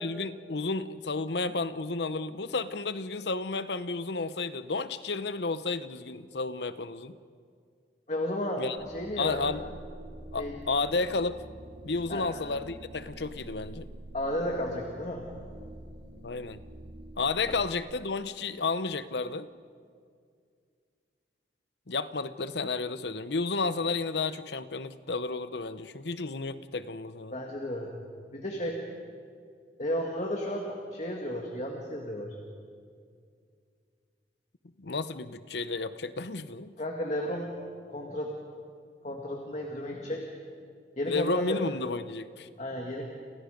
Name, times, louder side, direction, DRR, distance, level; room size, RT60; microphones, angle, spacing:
voice 1, 0.0-7.2 8.6-8.8 9.2-9.6 10.3-11.4 11.8-13.9 16.2-16.6 17.2-19.5 21.9-27.3 34.8-36.7 41.0-42.5, left 3 dB, 65° left, 13 dB, 0.9 m, -32 dB
voice 2, 8.1-9.5 10.4-10.5 12.1-12.3 14.1-15.2 27.3-27.9 28.3-28.8 29.8-32.4 36.8-37.5 37.9-38.3 39.0-40.3 41.0-41.6 42.6-43.0, left 1 dB, 40° left, 1 dB, 2.2 m, -33 dB
sound 1, 8.8-17.7, right 1 dB, 90° right, 3.0 m, -46 dB
29.5 x 29.0 x 5.2 m, 2.2 s
head